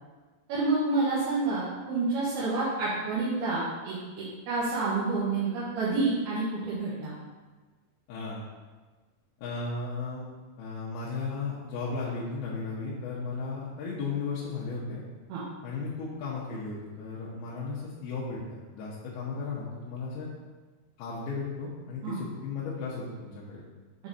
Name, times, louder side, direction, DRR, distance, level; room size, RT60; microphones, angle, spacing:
voice 1, 0.5-7.1 15.3-15.4 22.0-22.2, right 3 dB, 75° right, -9 dB, 3.1 m, -29 dB
voice 2, 8.1-8.4 9.4-10.3 10.6-15.0 15.6-20.3 21.0-23.6, left 4 dB, 75° left, -6 dB, 2.8 m, -35 dB
7.5 x 4.0 x 4.1 m, 1.3 s
omnidirectional pair, 4.6 m